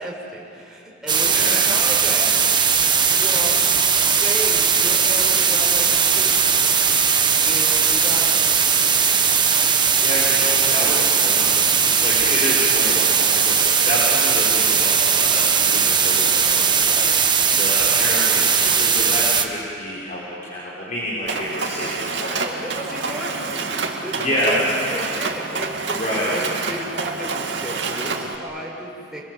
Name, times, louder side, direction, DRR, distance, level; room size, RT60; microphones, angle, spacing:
voice 1, 0.0-2.4 3.0-3.6 4.1-6.4 7.4-8.6 22.4-29.2, equal, 5° right, -4 dB, 5.6 m, -34 dB
sound 1, 1.1-19.5, right 6 dB, 25° right, 1.4 m, -18 dB
voice 2, 1.2-1.7 9.5-17.2 17.5-22.6 23.1-23.3 24.1-24.6 25.9-26.4, equal, 45° left, -8 dB, 5.7 m, -28 dB
Mechanisms, 21.3-28.4, right 4 dB, 75° right, 2.7 m, -28 dB
29.0 x 25.5 x 8.0 m, 2.7 s
head